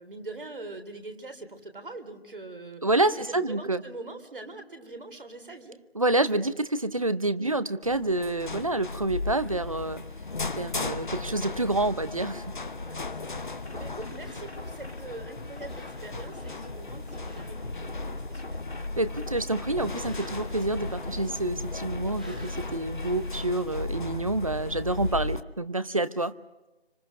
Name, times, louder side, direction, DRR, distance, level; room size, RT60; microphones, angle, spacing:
voice 1, 0.0-2.9 3.3-5.8 7.4-7.6 12.8-18.7, right 2 dB, 55° right, 7 dB, 3.6 m, -43 dB
voice 2, 2.8-3.8 6.0-10.0 10.6-12.5 19.0-26.3, right 2 dB, 35° right, 15 dB, 0.8 m, -28 dB
sound 1, 7.8-25.4, left 3 dB, 50° left, 0.9 m, -36 dB
sound 2, 9.6-23.6, equal, 5° right, 0.9 m, -52 dB
sound 3, 13.5-22.8, left 1 dB, 85° left, 2.9 m, -43 dB
27.0 x 26.0 x 6.3 m, 1.0 s
figure-of-eight pair, 165°, 32 cm